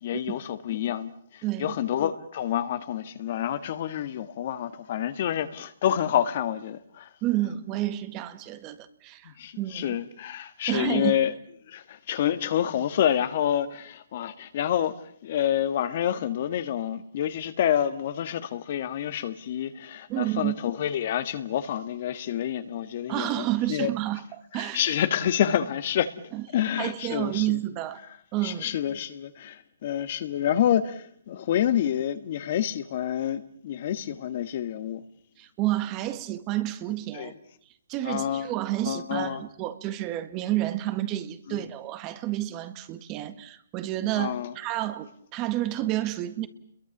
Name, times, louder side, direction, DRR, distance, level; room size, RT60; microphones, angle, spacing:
voice 1, 0.0-7.1 9.3-11.3 11.7-23.9 24.5-26.1 26.5-27.6 28.4-35.0 37.1-37.3 38.0-38.5 38.9-39.4 41.5-41.6 44.2-44.5, left 10 dB, 40° left, 1.7 m, -28 dB
voice 2, 1.4-1.8 7.2-10.0 10.7-11.1 20.1-20.6 23.1-24.8 26.3-26.4 26.8-28.0 28.3-28.7 35.4-37.3 37.9-46.5, right 15 dB, 20° right, 1.6 m, -30 dB
30.0 x 22.5 x 7.3 m
hypercardioid pair, 165°, 0 cm